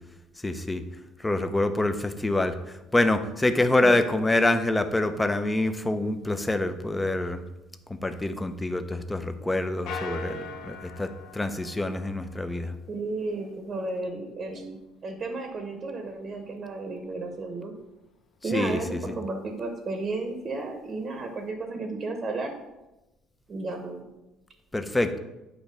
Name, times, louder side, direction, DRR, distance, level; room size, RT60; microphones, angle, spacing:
voice 1, 0.4-0.8 1.2-7.4 7.9-12.7 18.5-19.1 24.7-25.2, left 2 dB, 10° left, 9 dB, 0.5 m, -26 dB
sound 1, 9.9-12.6, left 3 dB, 70° left, 0.7 m, -39 dB
voice 2, 12.9-14.8 15.0-17.7 18.4-22.6 23.5-24.1, right 3 dB, 35° right, 4 dB, 0.8 m, -33 dB
8.3 x 3.0 x 5.2 m, 1.0 s
cardioid pair, 120°, 0 cm